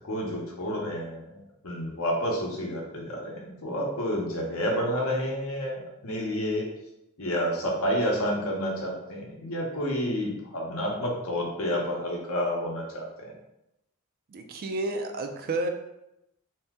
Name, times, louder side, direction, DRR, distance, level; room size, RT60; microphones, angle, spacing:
voice 1, 0.0-1.4 1.6-6.7 7.2-13.3, equal, 70° left, -1 dB, 0.7 m, -29 dB
voice 2, 14.3-15.7, right 2 dB, 45° right, 5 dB, 0.3 m, -30 dB
2.7 x 2.1 x 3.4 m, 0.86 s
head